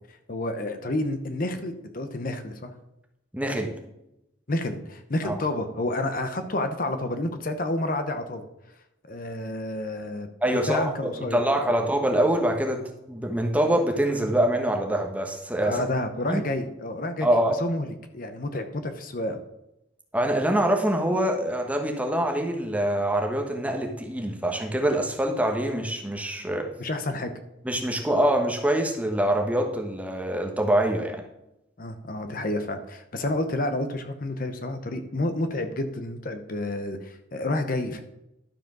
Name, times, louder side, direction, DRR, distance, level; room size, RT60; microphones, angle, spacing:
voice 1, 0.3-2.7 4.5-8.5 9.1-10.3 10.7-11.4 11.7-11.8 15.6-17.3 17.6-19.4 26.8-27.3 31.8-38.0, left 1 dB, 45° left, 8 dB, 0.8 m, -29 dB
voice 2, 3.3-3.7 5.2-5.3 10.4-10.9 11.3-12.8 13.1-15.8 16.3-16.4 17.2-17.5 20.1-26.7 27.6-31.2, right 1 dB, 5° right, 2 dB, 1.2 m, -24 dB
12.0 x 4.9 x 6.1 m, 0.85 s
head